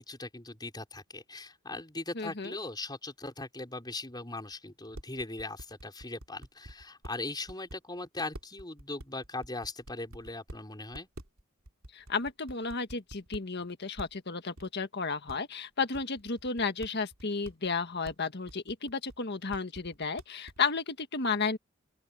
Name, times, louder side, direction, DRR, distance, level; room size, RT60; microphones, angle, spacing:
voice 1, 0.0-11.1, left 2 dB, 20° left, 5.1 m, -39 dB
voice 2, 2.1-2.6 11.9-21.6, left 4 dB, 55° left, 1.6 m, -33 dB
sound 1, 4.5-4.6 4.9-7.1 7.5-7.8 8.3-10.6 10.9-11.4 11.7-13.4 14.0-14.1 14.6-14.7 15.3-15.4 15.9-17.7 18.0-18.1 18.5-19.2 19.5-20.6, right 1 dB, 85° right, 3.1 m, -46 dB
open air
head